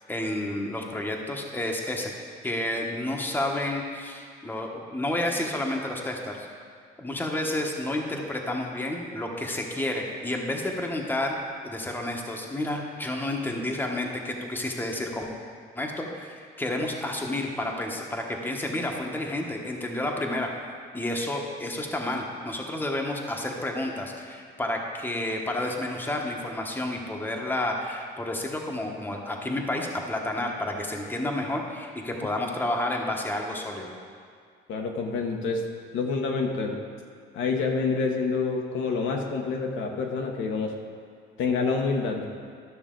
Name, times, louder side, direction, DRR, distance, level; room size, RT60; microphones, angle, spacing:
voice 1, 0.1-2.1 2.4-6.5 7.0-11.4 11.6-15.3 15.8-20.5 20.9-33.9, left 1 dB, 10° left, 1 dB, 1.0 m, -30 dB
voice 2, 34.7-35.6 35.9-36.7 37.3-40.7 41.4-42.3, left 4 dB, 70° left, 1 dB, 1.1 m, -27 dB
12.5 x 6.3 x 3.8 m, 2.1 s
cardioid pair, 105°, 21 cm